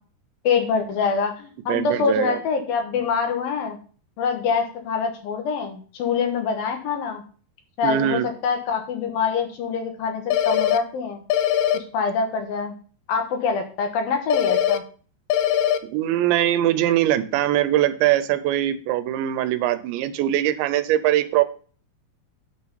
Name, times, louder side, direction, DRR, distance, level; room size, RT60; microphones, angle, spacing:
voice 1, 0.4-3.8 4.2-7.2 7.8-11.2 11.7-12.7 13.1-14.8, left 5 dB, 70° left, 5 dB, 2.7 m, -25 dB
voice 2, 1.7-2.4 7.8-8.3 15.8-21.4, right 12 dB, 90° right, 12 dB, 3.1 m, -22 dB
sound 1, 10.3-10.8 11.3-11.8 14.3-14.8 15.3-15.8, left 11 dB, 90° left, 2.9 m, -20 dB
9.0 x 6.5 x 5.3 m, 0.41 s
omnidirectional pair, 5.0 m